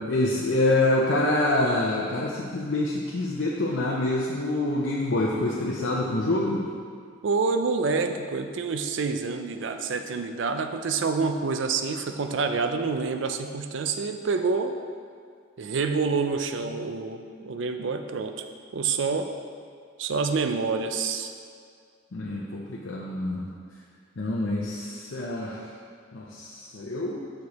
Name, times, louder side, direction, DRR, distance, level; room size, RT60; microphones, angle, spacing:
voice 1, 0.0-6.6 16.6-17.0 22.1-23.5 24.2-25.7 26.1-27.2, left 2 dB, 65° left, -4 dB, 0.6 m, -26 dB
voice 2, 7.2-14.8 15.6-18.3 18.7-19.3 20.0-21.3, right 4 dB, 65° right, 7 dB, 0.4 m, -27 dB
6.3 x 4.8 x 4.1 m, 2.1 s
head